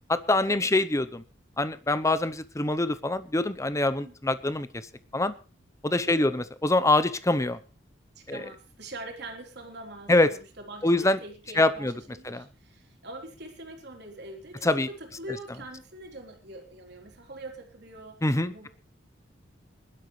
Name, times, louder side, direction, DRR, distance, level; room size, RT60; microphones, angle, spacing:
voice 1, 0.1-1.2 1.6-4.7 5.1-5.3 5.8-7.6 8.3-8.4 10.1-10.3 10.8-11.2 11.6-11.9 12.2-12.4 14.6-14.9 18.2-18.7, left 2 dB, 15° left, 14 dB, 0.8 m, -24 dB
voice 2, 6.0-6.5 8.2-18.2 18.5-18.7, right 1 dB, 60° right, 3 dB, 3.7 m, -43 dB
22.0 x 12.0 x 3.2 m, 0.32 s
head